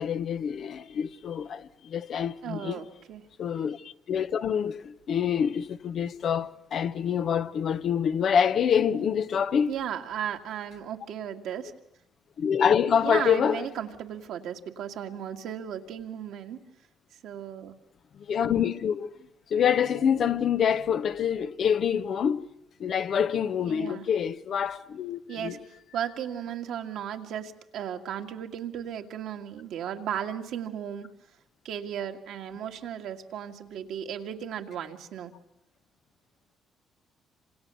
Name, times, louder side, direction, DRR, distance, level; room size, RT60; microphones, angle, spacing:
voice 1, 0.0-2.8 3.4-3.8 4.1-9.7 12.4-13.7 18.3-19.1 19.5-22.4 22.8-25.5, left 8 dB, 60° left, 1.1 m, -26 dB
voice 2, 2.4-3.2 9.7-11.7 13.0-16.6 17.2-17.7 23.6-24.1 25.3-25.6 25.9-31.1 31.6-35.3, right 9 dB, 75° right, 2.1 m, -35 dB
27.5 x 27.0 x 7.0 m
supercardioid pair, 60°, 0 cm